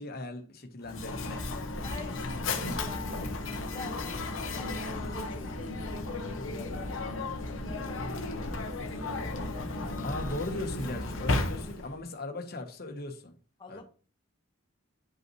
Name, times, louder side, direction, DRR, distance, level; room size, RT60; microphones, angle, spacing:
voice 1, 0.0-1.6 10.0-13.3 13.7-13.8, left 2 dB, 45° left, 1.2 m, -38 dB
Mechanisms, 0.8-12.0, left 2 dB, 70° left, 1.0 m, -34 dB
voice 2, 1.8-8.1 13.6-13.8, left 2 dB, 20° left, 1.4 m, -47 dB
9.8 x 5.4 x 3.1 m
head